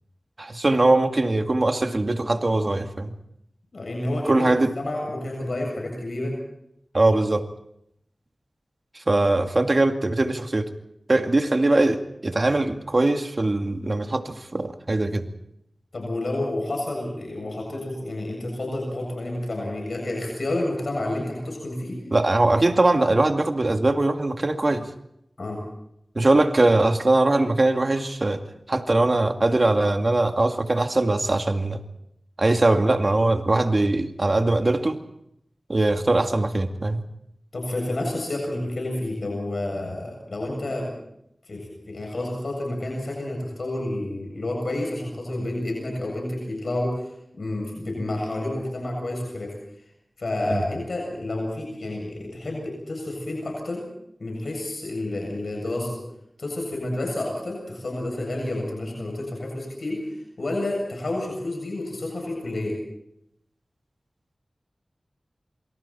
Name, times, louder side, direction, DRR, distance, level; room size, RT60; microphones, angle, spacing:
voice 1, 0.4-3.1 4.3-4.7 6.9-7.4 9.0-10.7 11.1-15.3 22.1-24.9 26.2-31.8 32.4-35.0 35.7-37.0 50.5-50.6, right 2 dB, 50° right, 6 dB, 2.2 m, -21 dB
voice 2, 3.7-4.5 4.8-6.4 15.9-22.0 25.4-25.6 37.5-40.9 41.4-49.5 50.2-53.8 54.2-56.0 56.4-62.8, left 1 dB, 80° left, 0 dB, 7.4 m, -30 dB
27.5 x 25.0 x 4.4 m, 0.77 s
wide cardioid pair, 45°, 0 cm